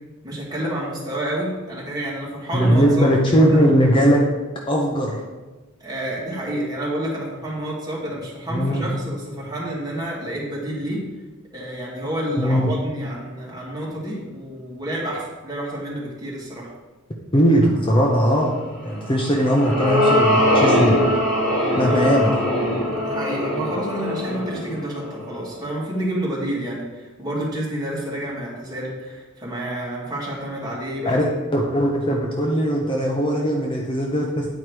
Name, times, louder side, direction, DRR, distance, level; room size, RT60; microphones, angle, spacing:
voice 1, 0.2-3.1 3.5-3.6 5.8-11.0 11.5-16.7 21.8-22.0 22.8-31.2, right 1 dB, 20° right, -5 dB, 2.0 m, -29 dB
voice 2, 2.5-4.2 4.7-5.2 8.5-8.8 12.4-12.7 17.3-21.0 21.8-22.3 31.1-31.2 31.5-34.5, equal, 25° left, -1 dB, 0.7 m, -19 dB
sound 1, 19.0-25.6, left 1 dB, ahead, 2.8 m, -21 dB
9.2 x 4.7 x 4.6 m, 1.2 s
head